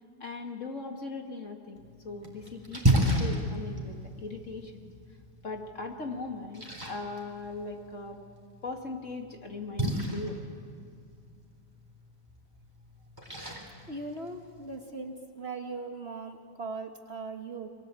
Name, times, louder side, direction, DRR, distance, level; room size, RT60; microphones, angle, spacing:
voice 1, 0.2-1.8 2.0-4.9 5.4-8.2 8.6-10.4, left 3 dB, 45° left, 3 dB, 2.4 m, -39 dB
Splash splatter, 1.8-14.8, right 1 dB, 10° right, 3.8 m, -34 dB
voice 2, 13.9-17.7, right 3 dB, 35° right, 4 dB, 1.7 m, -39 dB
29.0 x 23.0 x 8.3 m, 2.3 s
omnidirectional pair, 1.9 m